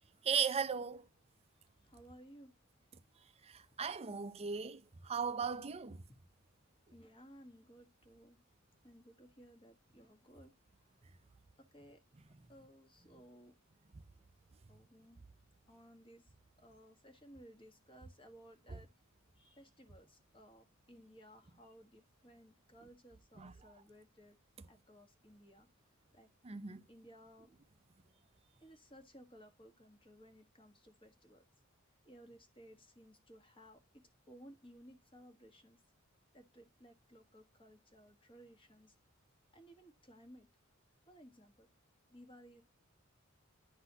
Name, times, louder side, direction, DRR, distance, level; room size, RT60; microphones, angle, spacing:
voice 1, 0.2-1.1 3.4-6.0 18.7-18.8 23.4-23.5 26.4-26.8, right 6 dB, 30° right, 0.5 m, -37 dB
voice 2, 1.5-2.6 3.2-3.3 3.6-3.8 6.9-8.4 8.8-10.9 11.7-12.0 12.5-13.5 14.7-15.2 15.7-18.9 19.3-24.4 24.7-25.7 26.1-26.3 26.9-27.5 28.6-31.4 32.0-33.8 34.3-35.8 36.3-39.0 39.5-40.5 41.1-41.7 42.1-42.6, equal, 25° left, 1.4 m, -59 dB
11.0 x 4.0 x 2.8 m
head